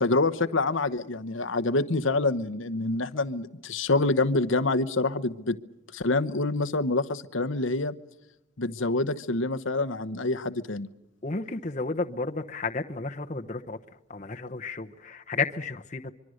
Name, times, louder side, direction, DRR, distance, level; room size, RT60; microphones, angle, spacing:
voice 1, 0.0-5.6 5.9-7.9 8.6-10.9, left 2 dB, 70° left, 10 dB, 1.0 m, -26 dB
voice 2, 11.2-13.8 14.1-16.1, left 3 dB, 35° left, 4 dB, 1.0 m, -32 dB
25.0 x 24.0 x 6.5 m, 0.91 s
head